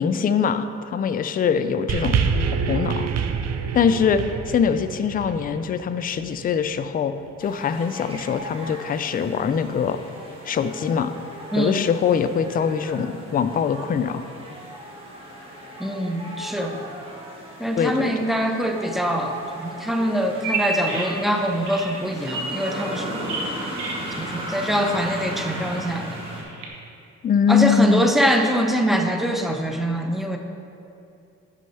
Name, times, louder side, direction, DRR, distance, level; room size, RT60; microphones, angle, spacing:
voice 1, 0.0-2.4 2.7-3.1 3.7-7.1 7.4-10.0 10.4-11.1 11.6-14.2 17.8-18.1 27.2-28.1, left 7 dB, 30° left, 10 dB, 0.4 m, -22 dB
sound 1, 1.9-6.4 7.3-7.4, right 6 dB, 60° right, 0.5 m, -26 dB
sound 2, 7.4-26.4, right 1 dB, 20° right, 1.7 m, -36 dB
voice 2, 11.5-11.9 15.8-16.9 17.6-23.1 24.2-26.2 27.5-30.4, equal, ahead, 3 dB, 0.7 m, -24 dB
Bird vocalization bird call bird song, 20.3-26.7, right 3 dB, 90° right, 1.2 m, -33 dB
6.3 x 5.5 x 5.5 m, 2.6 s
cardioid pair, 90°, 30 cm